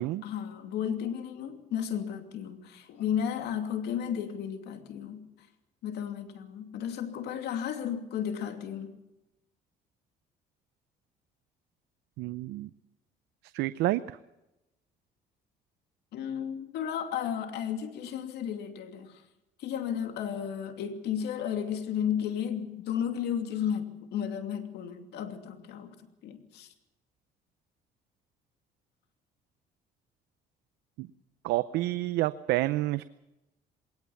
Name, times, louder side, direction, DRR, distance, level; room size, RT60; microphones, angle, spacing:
voice 1, 0.0-5.3 5.8-9.0 16.1-19.2 19.6-26.0 26.2-26.7, left 8 dB, 75° left, 2.6 m, -33 dB
voice 2, 12.2-12.7 13.5-14.2 31.0-31.1 31.4-33.0, right 17 dB, 85° right, 0.7 m, -29 dB
21.0 x 19.0 x 7.1 m
cardioid pair, 110°, 17 cm